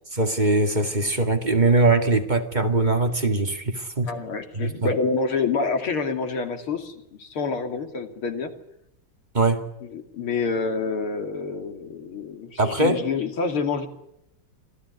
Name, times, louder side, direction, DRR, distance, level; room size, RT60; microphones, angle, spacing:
voice 1, 0.1-4.1 4.5-4.9 9.3-9.6 12.6-13.0, right 2 dB, 20° right, 6 dB, 2.1 m, -21 dB
voice 2, 4.0-8.5 9.9-13.9, left 4 dB, 75° left, 6 dB, 3.4 m, -27 dB
27.0 x 16.0 x 9.8 m, 0.82 s
omnidirectional pair, 2.4 m